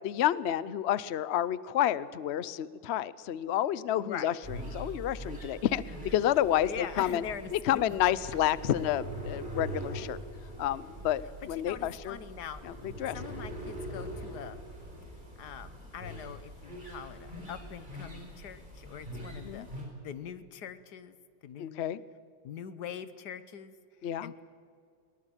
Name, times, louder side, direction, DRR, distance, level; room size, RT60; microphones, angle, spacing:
voice 1, 0.0-4.3 4.7-7.2 7.5-10.2 10.6-11.2 11.5-12.2 12.6-13.2 19.4-19.7 21.6-22.0 24.0-24.3, left 11 dB, 85° left, 18 dB, 0.5 m, -30 dB
voice 2, 4.0-4.3 6.6-8.0 11.6-12.6 13.1-14.6 15.4-19.7 20.0-21.2 21.4-21.9 22.4-23.7 24.0-24.4, left 8 dB, 65° left, 13 dB, 1.6 m, -42 dB
sound 1, 4.4-19.8, right 1 dB, 25° right, 5.5 m, -43 dB
21.5 x 19.5 x 8.9 m, 2.3 s
omnidirectional pair, 2.0 m